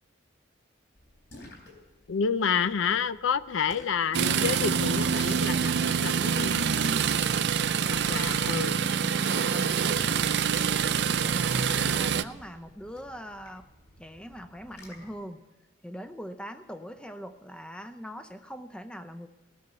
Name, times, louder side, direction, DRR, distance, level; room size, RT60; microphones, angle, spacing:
Splash splatter, 0.9-15.2, left 1 dB, 60° left, 3.8 m, -53 dB
voice 1, 2.1-6.7 7.9-8.8, left 6 dB, 75° left, 15 dB, 0.5 m, -29 dB
sound 1, 4.1-12.2, right 6 dB, 55° right, 0.5 m, -26 dB
voice 2, 7.7-10.5 11.1-13.7 14.0-15.4 15.8-19.3, equal, 5° left, 9 dB, 0.6 m, -42 dB
19.0 x 6.8 x 8.0 m, 1.2 s
head